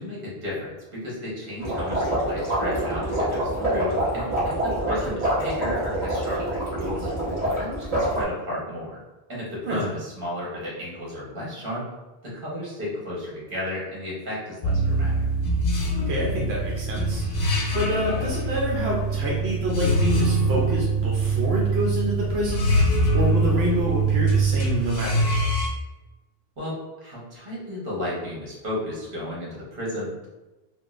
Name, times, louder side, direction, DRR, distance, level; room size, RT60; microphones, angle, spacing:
voice 1, 0.0-7.1 7.4-9.0 9.3-11.8 12.2-15.2 18.0-18.3 26.6-30.3, left 1 dB, 60° right, -6 dB, 1.3 m, -33 dB
sound 1, 1.6-8.2, right 1 dB, 35° right, 1.0 m, -26 dB
sound 2, 14.6-25.7, right 2 dB, 50° left, 0.6 m, -23 dB
voice 2, 16.0-25.3, equal, 90° right, -3 dB, 0.9 m, -27 dB
3.7 x 2.2 x 2.4 m, 1.1 s
omnidirectional pair, 1.0 m